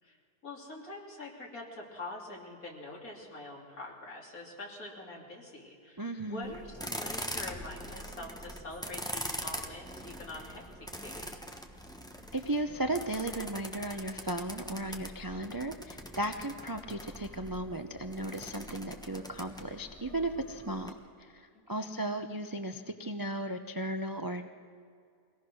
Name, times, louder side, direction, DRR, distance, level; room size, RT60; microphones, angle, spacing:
voice 1, 0.4-11.4 21.5-21.9, left 2 dB, 65° left, -2 dB, 3.6 m, -45 dB
voice 2, 6.0-6.5 12.3-24.5, right 1 dB, 30° right, 6 dB, 0.4 m, -36 dB
sound 1, 6.4-20.9, equal, 5° left, 1.1 m, -43 dB
23.0 x 18.0 x 6.3 m, 2.3 s
omnidirectional pair, 1.6 m